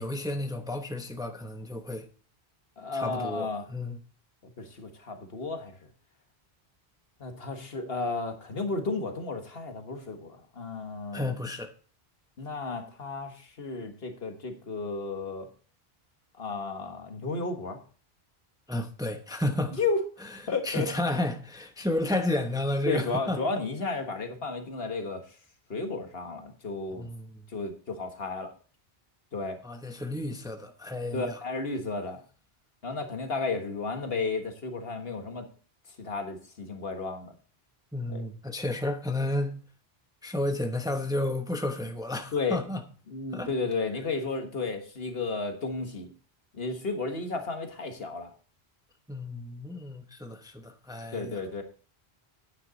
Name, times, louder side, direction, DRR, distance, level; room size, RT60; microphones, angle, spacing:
voice 1, 0.0-2.1 2.9-4.0 11.1-11.7 18.7-19.8 20.3-20.4 20.6-23.4 27.0-27.5 29.6-31.4 37.9-39.6 40.2-42.8 43.3-43.5 49.1-51.4, left 1 dB, 5° right, 0.9 m, -32 dB
voice 2, 2.8-3.6 4.4-5.7 7.2-11.4 12.4-15.5 16.4-17.8 19.8-20.0 20.5-20.9 22.9-25.2 25.7-27.1 27.5-28.5 29.3-29.6 31.1-32.2 32.8-35.5 36.0-37.3 38.1-38.2 42.3-42.6 43.1-46.1 46.5-48.3 51.1-51.6, left 3 dB, 65° left, 1.7 m, -33 dB
9.7 x 9.4 x 4.0 m
omnidirectional pair, 1.1 m